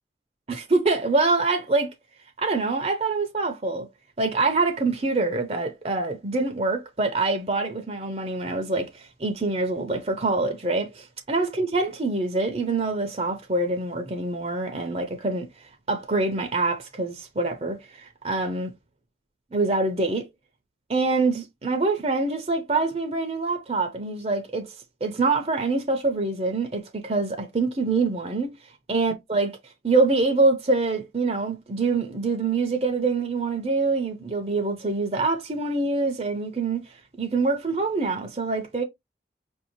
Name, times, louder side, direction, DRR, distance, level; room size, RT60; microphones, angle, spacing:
voice 1, 0.5-1.9 2.4-3.9 4.2-15.5 15.9-18.7 19.5-20.3 20.9-24.7 25.0-28.5 28.9-29.5 29.8-38.8, right 3 dB, 35° right, 0.6 m, -25 dB
5.4 x 2.7 x 2.8 m
head